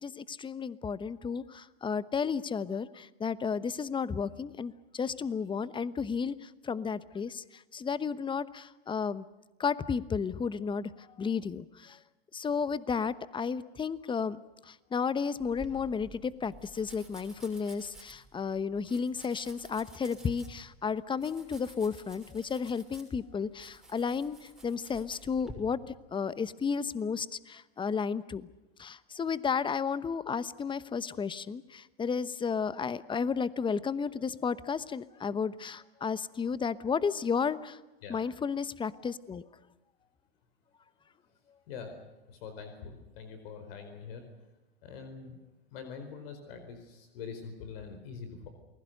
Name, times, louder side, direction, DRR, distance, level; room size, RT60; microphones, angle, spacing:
voice 1, 0.0-7.4 7.7-9.2 9.6-10.9 11.2-12.0 12.3-14.4 14.7-25.8 26.1-28.5 28.8-37.8 38.1-39.4, left 6 dB, 15° left, 16 dB, 1.0 m, -33 dB
Domestic sounds home sounds, 15.4-25.5, right 1 dB, ahead, 6.3 m, -52 dB
voice 2, 41.7-44.3 44.8-45.4 45.7-48.5, left 5 dB, 65° left, 7 dB, 4.7 m, -44 dB
29.0 x 20.5 x 6.7 m, 1.1 s
hypercardioid pair, 110°, 31 cm